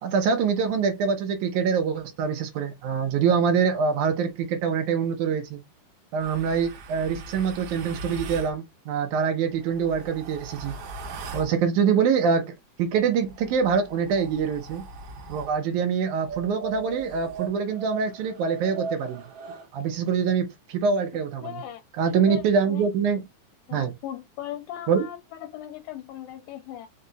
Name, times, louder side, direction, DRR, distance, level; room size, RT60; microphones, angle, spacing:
voice 1, 0.0-5.6 6.1-10.8 11.3-12.5 12.8-14.8 15.3-19.3 19.7-21.6 22.0-23.2 23.7-23.9 24.9-25.1, right 6 dB, 70° right, 2.1 m, -25 dB
sound 1, 6.2-8.6 9.5-11.6 13.2-15.6 16.2-19.7, right 4 dB, 85° right, 1.3 m, -39 dB
voice 2, 21.4-21.8 22.1-22.4 22.7-22.9 23.7-26.9, left 12 dB, 90° left, 2.3 m, -38 dB
5.4 x 2.3 x 3.9 m
omnidirectional pair, 4.0 m